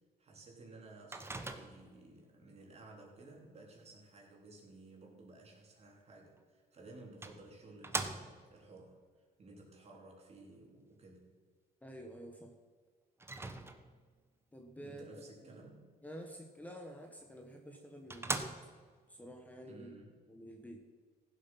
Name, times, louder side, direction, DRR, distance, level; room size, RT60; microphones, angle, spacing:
voice 1, 0.2-11.3 14.8-15.8 19.7-20.1, right 2 dB, 40° right, -1 dB, 3.6 m, -55 dB
Microwave oven, 1.1-2.0 6.4-6.5 7.2-8.6 13.2-14.1 17.2-17.3 17.7-17.8 18.1-19.0, right 2 dB, 15° right, 1.1 m, -41 dB
voice 2, 11.8-12.6 14.5-15.1 16.0-18.5 19.1-19.9 20.3-20.8, equal, 10° left, 3 dB, 1.3 m, -49 dB
15.5 x 7.7 x 5.7 m, 1.5 s
cardioid pair, 110°, 17 cm